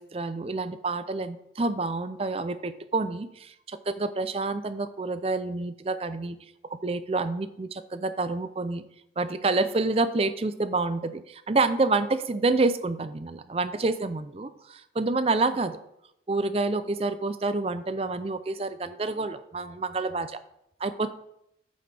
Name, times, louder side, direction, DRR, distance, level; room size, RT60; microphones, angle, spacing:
voice 1, 0.0-6.4 6.7-8.8 9.2-15.8 16.3-20.4 20.8-21.1, right 3 dB, 35° right, 12 dB, 0.4 m, -28 dB
8.9 x 7.8 x 3.4 m, 0.80 s
head